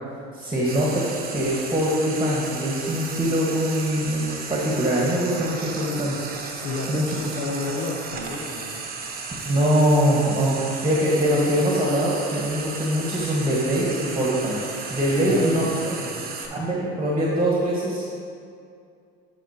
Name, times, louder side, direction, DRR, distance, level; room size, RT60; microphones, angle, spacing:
voice 1, 0.3-1.1 1.3-6.5 6.9-7.1 9.4-14.6 14.9-16.0 16.5-18.1, equal, 15° right, -5 dB, 1.5 m, -23 dB
Frying (food), 0.6-16.5, right 4 dB, 30° right, 1.0 m, -34 dB
voice 2, 6.6-8.8 15.2-15.7, left 3 dB, 55° left, -2 dB, 0.9 m, -31 dB
10.0 x 5.4 x 2.9 m, 2.3 s
supercardioid pair, 85°, 29 cm